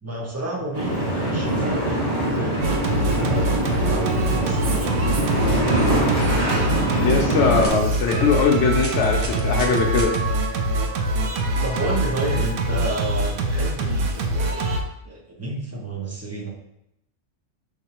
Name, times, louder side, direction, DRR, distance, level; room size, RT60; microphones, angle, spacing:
voice 1, 0.0-5.6 11.6-14.7 15.0-16.5, right 2 dB, 15° right, -2 dB, 0.7 m, -30 dB
sound 1, 0.7-7.7, right 1 dB, 35° right, 1.2 m, -23 dB
Singing, 2.6-14.8, right 1 dB, 85° right, 0.9 m, -24 dB
voice 2, 7.0-10.1, left 5 dB, 70° left, 1 dB, 0.8 m, -20 dB
sound 2, 7.0-7.1 7.6-7.7 8.1-8.2 8.7-10.2 11.4-11.5 12.3-12.4, right 1 dB, 50° right, 1.0 m, -34 dB
5.1 x 3.1 x 2.9 m, 0.81 s
omnidirectional pair, 1.3 m